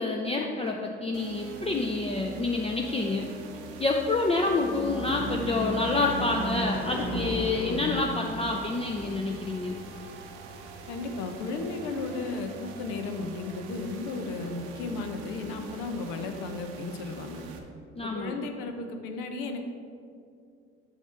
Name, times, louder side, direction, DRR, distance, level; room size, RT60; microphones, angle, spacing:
voice 1, 0.0-3.3 3.8-9.8 17.9-18.4, left 3 dB, 20° left, 1 dB, 0.5 m, -28 dB
sound 1, 1.1-17.6, right 4 dB, 75° right, 0.7 m, -44 dB
Car passing by / Truck / Engine, 3.4-12.1, right 1 dB, 5° right, 1.3 m, -37 dB
voice 2, 10.9-17.4 18.0-19.6, left 3 dB, 70° left, 6 dB, 0.8 m, -34 dB
7.1 x 5.8 x 3.4 m, 2.4 s
hypercardioid pair, 55°, 33 cm